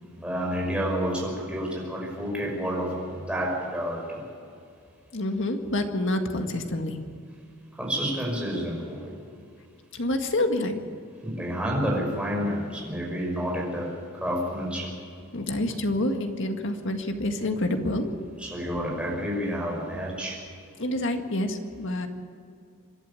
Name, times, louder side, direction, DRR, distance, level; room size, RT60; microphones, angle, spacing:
voice 1, 0.0-4.3 7.8-9.1 11.2-15.0 18.4-20.5, equal, 5° right, -2 dB, 5.6 m, -29 dB
voice 2, 5.1-7.0 9.9-10.9 15.3-18.1 20.8-22.1, left 1 dB, 60° left, 5 dB, 1.9 m, -27 dB
25.5 x 12.0 x 8.5 m, 2.4 s
head